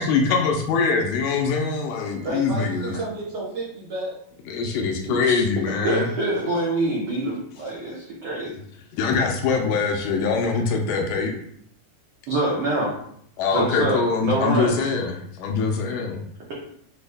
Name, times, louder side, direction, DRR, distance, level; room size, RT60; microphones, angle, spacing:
voice 1, 0.0-2.9 4.5-6.1 9.0-11.3 13.4-16.2, left 4 dB, 80° left, 2 dB, 2.1 m, -23 dB
voice 2, 2.2-4.1 4.7-4.8, right 2 dB, 55° right, -8 dB, 1.8 m, -31 dB
voice 3, 5.1-5.4 5.8-8.5 10.9-11.0 12.3-13.0 13.5-14.9, right 1 dB, 75° right, -4 dB, 1.4 m, -25 dB
6.1 x 2.3 x 3.3 m, 0.68 s
omnidirectional pair, 3.9 m